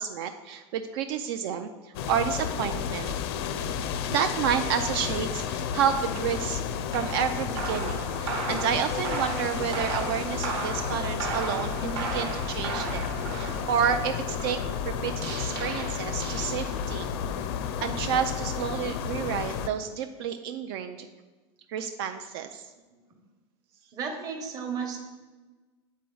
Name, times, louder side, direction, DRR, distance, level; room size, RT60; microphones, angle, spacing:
voice 1, 0.0-3.1 4.1-6.6 6.9-14.6 14.9-17.1 17.4-17.5 17.8-21.1 21.7-22.7, right 8 dB, 70° right, 7 dB, 0.4 m, -30 dB
sound 1, 1.9-19.7, left 7 dB, 85° left, 0.5 m, -32 dB
sound 2, 6.9-17.1, right 4 dB, 85° right, 1.3 m, -36 dB
voice 2, 23.9-25.0, right 6 dB, 30° right, 3 dB, 0.9 m, -34 dB
8.2 x 4.2 x 3.8 m, 1.2 s
supercardioid pair, 170°, 13 cm